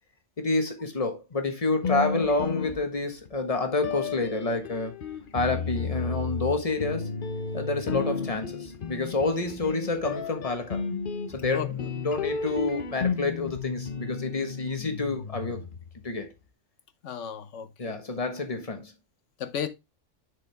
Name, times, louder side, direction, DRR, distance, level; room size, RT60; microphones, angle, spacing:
voice 1, 0.4-4.9 5.3-7.1 7.5-10.8 11.3-15.6 16.0-16.3 17.8-18.9, left 3 dB, 30° left, 1.3 m, -28 dB
sound 1, 1.8-3.3 3.8-16.0, left 5 dB, 50° left, 0.9 m, -33 dB
voice 2, 17.0-18.0 19.4-19.7, left 8 dB, 75° left, 1.1 m, -34 dB
6.9 x 4.9 x 3.4 m
omnidirectional pair, 1.3 m